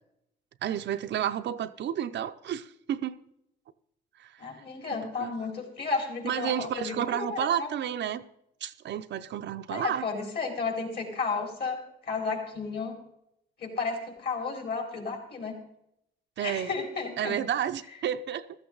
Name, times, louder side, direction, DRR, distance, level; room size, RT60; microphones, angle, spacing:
voice 1, 0.6-3.2 4.2-4.4 5.2-5.3 6.2-8.2 8.6-10.1 16.4-16.7 17.2-18.5, right 10 dB, 65° right, 0.7 m, -31 dB
voice 2, 4.4-7.7 9.7-11.8 12.0-12.9 13.6-15.6 16.4-17.4, left 4 dB, 55° left, 4.5 m, -33 dB
15.0 x 13.5 x 3.9 m
cardioid pair, 90°, 20 cm